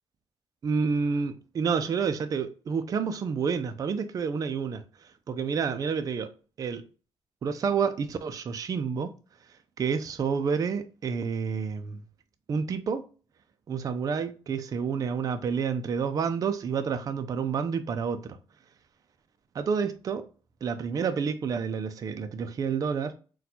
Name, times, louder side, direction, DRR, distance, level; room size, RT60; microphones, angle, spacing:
voice 1, 0.6-4.8 5.3-6.3 6.6-6.8 7.4-9.1 9.8-12.0 12.5-13.1 13.7-18.4 19.5-20.3 20.6-23.1, right 6 dB, 35° right, 0.3 m, -29 dB
4.1 x 2.2 x 2.7 m
wide cardioid pair, 155°, 10 cm